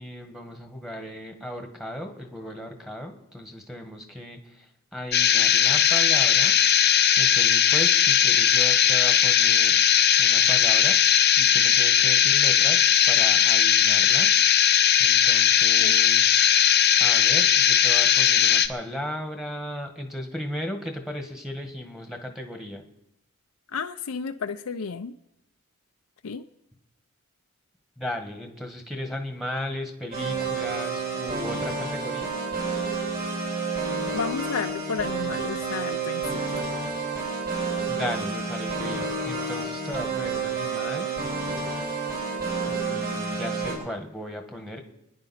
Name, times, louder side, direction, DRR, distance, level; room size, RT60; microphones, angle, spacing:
voice 1, 0.0-6.6 7.2-9.9 10.2-11.0 11.4-14.4 15.0-16.4 17.0-22.8 28.0-32.3 37.9-41.1 42.7-44.8, left 1 dB, ahead, 4 dB, 1.6 m, -36 dB
sound 1, 5.1-18.7, left 9 dB, 45° left, 0.8 m, -19 dB
voice 2, 23.7-25.1 26.2-26.4 34.1-36.6, left 5 dB, 80° left, 6 dB, 0.6 m, -32 dB
sound 2, 30.1-43.8, right 4 dB, 45° right, 7.1 m, -29 dB
28.5 x 10.5 x 4.3 m, 0.86 s
head